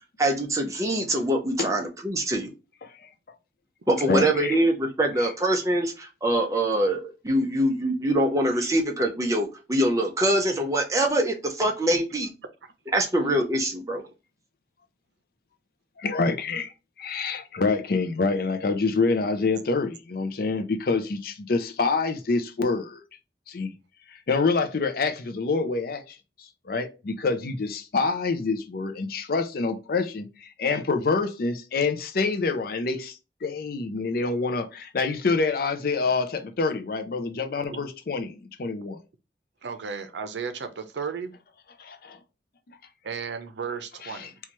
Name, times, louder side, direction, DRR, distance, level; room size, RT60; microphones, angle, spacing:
voice 1, 0.2-2.5 3.9-12.3 12.9-14.0, right 1 dB, 20° right, 0.7 m, -24 dB
voice 2, 4.1-4.6 5.2-5.3 16.0-16.7 17.0-23.0 23.5-23.7 24.3-39.0 41.8-42.2 44.0-44.3, left 4 dB, 55° left, 0.5 m, -27 dB
voice 3, 39.6-41.3 43.0-44.4, right 6 dB, 85° right, 0.6 m, -34 dB
4.3 x 2.4 x 3.0 m
head